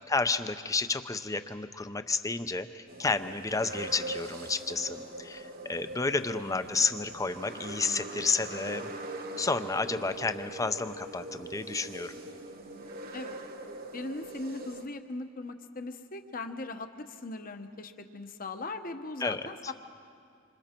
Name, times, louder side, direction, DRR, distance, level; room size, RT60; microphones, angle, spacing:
voice 1, 0.1-8.9 9.4-12.2 19.2-19.7, left 4 dB, 15° left, 10 dB, 0.6 m, -31 dB
sound 1, 2.9-14.8, right 2 dB, 50° right, 1.3 m, -42 dB
voice 2, 6.5-6.8 13.1-13.3 13.9-19.7, left 2 dB, 45° left, 7 dB, 1.0 m, -39 dB
26.5 x 26.0 x 4.5 m, 2.3 s
head